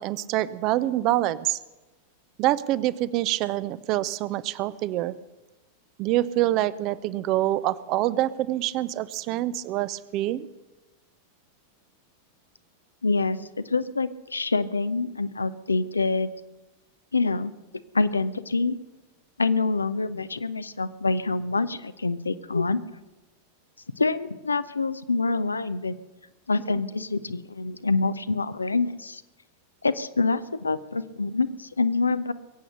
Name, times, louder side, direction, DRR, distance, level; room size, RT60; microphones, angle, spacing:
voice 1, 0.0-1.6 2.4-5.1 6.0-10.5, right 14 dB, 40° right, 18 dB, 0.6 m, -26 dB
voice 2, 13.0-16.3 17.1-17.5 17.9-18.8 19.4-22.8 24.0-26.0 26.5-29.2 29.8-32.3, left 3 dB, 80° left, 13 dB, 0.6 m, -26 dB
22.0 x 8.5 x 6.7 m, 1.1 s
figure-of-eight pair, 90°, 0 cm